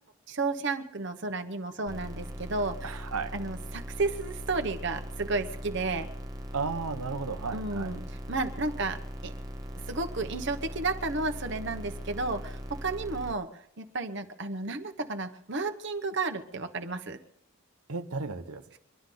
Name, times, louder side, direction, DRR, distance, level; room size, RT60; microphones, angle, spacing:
voice 1, 0.3-3.0 3.3-6.1 7.5-9.3 9.9-17.2, right 3 dB, 55° right, 6 dB, 1.1 m, -32 dB
sound 1, 1.9-13.3, equal, 15° right, 1.0 m, -40 dB
voice 2, 2.8-3.3 6.5-7.9 17.9-18.8, right 4 dB, 90° right, 9 dB, 1.0 m, -34 dB
24.0 x 11.5 x 3.9 m, 0.68 s
head